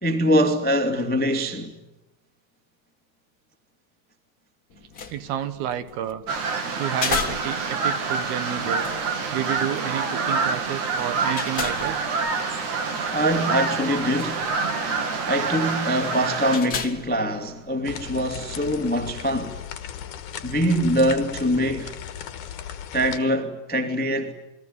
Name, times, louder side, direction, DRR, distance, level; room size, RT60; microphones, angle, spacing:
voice 1, 0.0-1.7 13.1-14.5 15.2-19.5 20.4-21.9 22.9-24.3, equal, 5° left, 0.8 m, -23 dB
sound 1, 4.7-18.2, left 6 dB, 75° left, 0.8 m, -37 dB
voice 2, 5.1-6.2 6.7-8.9 9.3-12.0, right 10 dB, 70° right, 3.0 m, -30 dB
sound 2, 6.3-16.6, right 4 dB, 50° right, 3.7 m, -27 dB
sound 3, 17.8-23.2, left 9 dB, 60° left, 2.5 m, -37 dB
28.5 x 22.0 x 9.6 m
omnidirectional pair, 4.7 m